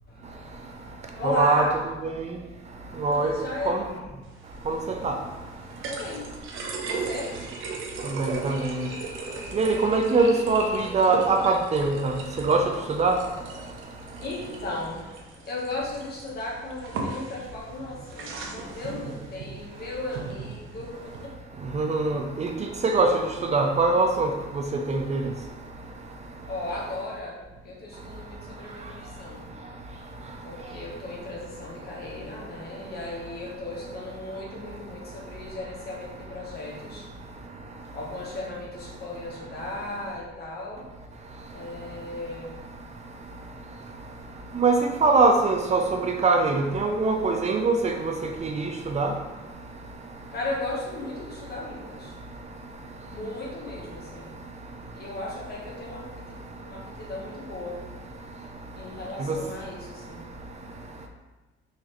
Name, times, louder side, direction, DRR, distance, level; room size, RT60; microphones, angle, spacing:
voice 1, 0.1-1.8 3.1-3.8 5.8-8.3 8.9-9.6 13.6-21.4 26.4-40.9 41.5-42.6 44.2-44.3 50.3-52.2 53.0-54.3 54.9-58.0 58.7-60.2, left 2 dB, 50° left, -3 dB, 1.1 m, -36 dB
voice 2, 1.2-1.7 2.0-2.1 3.0-3.3 3.7-3.8 4.7-4.8 5.0-5.2 8.2-8.9 9.5-12.1 12.5-12.6 13.0-13.2 21.7-22.5 22.8-23.1 23.5-24.3 24.9-25.2 44.6-47.9 48.4-48.7 48.9-49.1 59.3-59.4, right 3 dB, 35° right, 3 dB, 0.4 m, -22 dB
sound 1, 4.2-21.3, right 4 dB, 75° right, 0.6 m, -38 dB
3.9 x 3.0 x 3.0 m, 1.1 s
cardioid pair, 105°, 21 cm